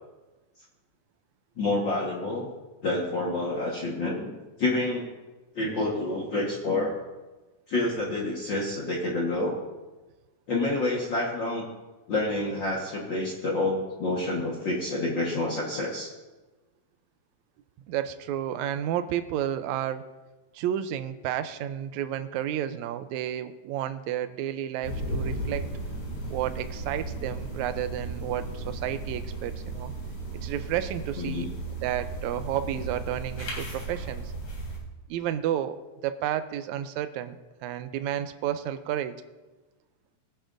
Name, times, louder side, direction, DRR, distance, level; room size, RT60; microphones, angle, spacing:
voice 1, 1.6-2.5 2.8-4.3 4.6-5.1 5.6-6.9 7.7-9.6 10.5-11.7 12.1-16.1 31.2-31.5, left 2 dB, 50° left, -3 dB, 1.7 m, -28 dB
voice 2, 17.9-20.1 20.6-25.6 26.3-29.9 30.4-31.5 31.8-34.3 35.1-35.8 36.0-37.4 37.6-39.2, right 11 dB, 80° right, 10 dB, 1.9 m, -31 dB
sound 1, 24.8-34.8, right 2 dB, 85° left, 4.3 m, -35 dB
20.5 x 10.0 x 2.6 m, 1.2 s
omnidirectional pair, 3.4 m